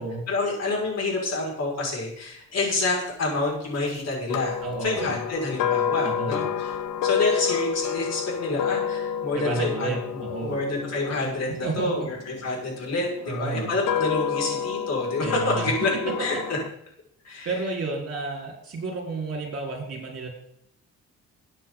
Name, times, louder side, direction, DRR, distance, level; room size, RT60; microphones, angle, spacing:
voice 1, 0.3-9.9 10.4-16.4 17.2-17.5, left 2 dB, 55° left, -2 dB, 5.8 m, -28 dB
sound 1, 4.3-12.5 13.2-16.7, left 8 dB, 85° left, 0.8 m, -29 dB
voice 2, 4.6-5.2 6.0-6.6 9.3-10.6 11.6-12.1 13.3-13.7 15.2-16.1 17.4-20.3, right 3 dB, 50° right, 0 dB, 4.5 m, -31 dB
14.0 x 9.3 x 4.0 m, 0.72 s
cardioid pair, 90°, 30 cm